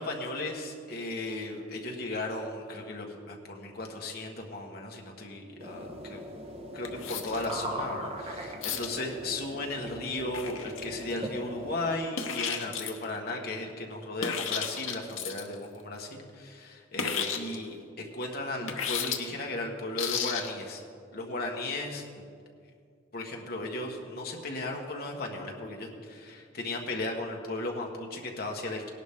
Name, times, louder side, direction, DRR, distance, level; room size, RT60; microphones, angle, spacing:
voice 1, 0.0-6.2 6.7-20.8 21.1-22.2 23.1-28.9, left 2 dB, 50° left, 1 dB, 1.5 m, -36 dB
sound 1, 5.6-11.9, equal, 30° right, 1.1 m, -40 dB
sound 2, 6.8-7.6 8.6-9.0 10.3-11.2 12.2-13.0 14.2-15.5 17.0-17.6 18.7-19.2 20.0-20.5, left 7 dB, 80° left, 1.0 m, -33 dB
18.0 x 11.0 x 3.7 m, 2.3 s
head